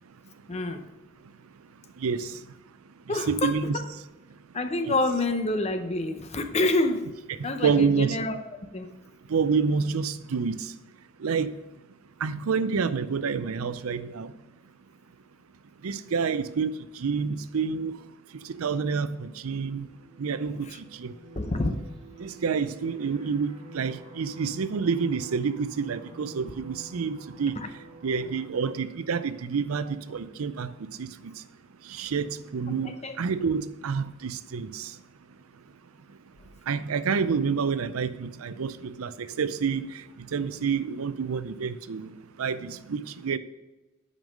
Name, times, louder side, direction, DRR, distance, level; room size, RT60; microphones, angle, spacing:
voice 1, 0.5-0.8 3.1-3.8 4.5-7.1 7.4-8.4 8.7-8.9 20.5-20.8 21.4-21.8 27.6-27.7 32.7-33.2, left 2 dB, 30° left, 8 dB, 0.7 m, -28 dB
voice 2, 3.3-3.7 7.6-8.2 9.3-10.5 11.2-11.5 12.2-14.3 15.8-16.7 17.0-18.0 18.6-19.9 20.2-20.6 21.0-21.1 22.2-27.6 28.0-30.7 31.0-31.1 32.0-32.3 32.5-34.9 36.7-39.8 40.3-42.1 42.4-43.4, right 5 dB, 90° right, 13 dB, 0.5 m, -28 dB
sound 1, 19.7-28.5, right 2 dB, 25° right, 2.7 m, -49 dB
9.2 x 5.3 x 5.3 m, 1.1 s
head